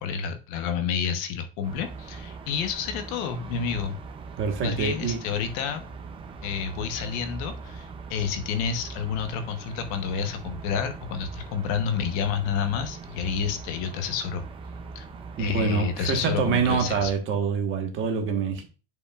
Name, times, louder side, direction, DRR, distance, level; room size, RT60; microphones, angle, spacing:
voice 1, 0.0-4.0 4.6-5.8 6.4-14.4 14.9-15.1 15.4-17.1, left 7 dB, 55° left, 1.0 m, -29 dB
sound 1, 1.6-17.1, right 4 dB, 15° right, 0.5 m, -41 dB
voice 2, 4.4-5.2 15.4-18.6, right 6 dB, 35° right, 1.3 m, -26 dB
10.0 x 5.2 x 2.4 m
cardioid pair, 180°, 37 cm